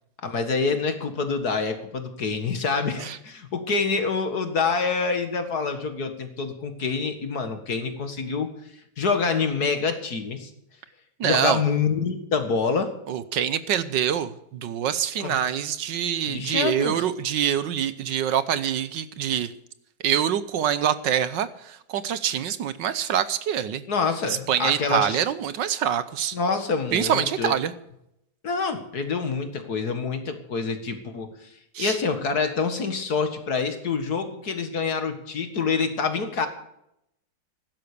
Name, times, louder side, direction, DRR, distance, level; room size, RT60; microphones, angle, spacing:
voice 1, 0.2-8.5 9.0-10.5 11.2-12.9 15.2-15.4 16.3-17.0 23.9-25.2 26.3-27.5 28.4-31.3 31.8-36.5, left 5 dB, 55° left, 8 dB, 2.2 m, -26 dB
voice 2, 11.2-11.6 13.1-19.5 20.0-23.8 24.2-26.4 26.9-27.7 31.7-32.0, right 9 dB, 70° right, 14 dB, 1.5 m, -25 dB
16.0 x 12.0 x 6.8 m, 0.78 s
omnidirectional pair, 2.1 m